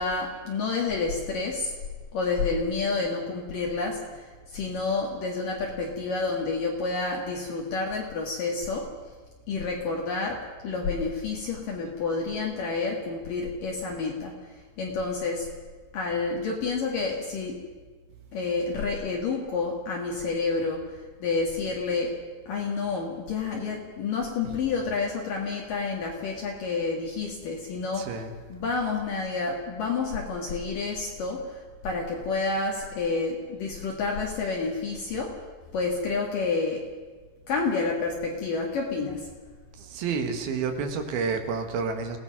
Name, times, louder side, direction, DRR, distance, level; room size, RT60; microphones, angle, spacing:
voice 1, 0.0-1.7 2.1-8.9 9.5-10.4 10.6-15.5 15.9-17.6 18.3-22.1 22.5-28.0 28.5-35.3 35.7-36.8 37.5-39.3, left 4 dB, 55° left, -1 dB, 3.3 m, -29 dB
voice 2, 28.0-28.3 39.8-42.2, right 5 dB, 65° right, 6 dB, 3.4 m, -29 dB
26.5 x 17.5 x 5.9 m, 1.4 s
omnidirectional pair, 4.9 m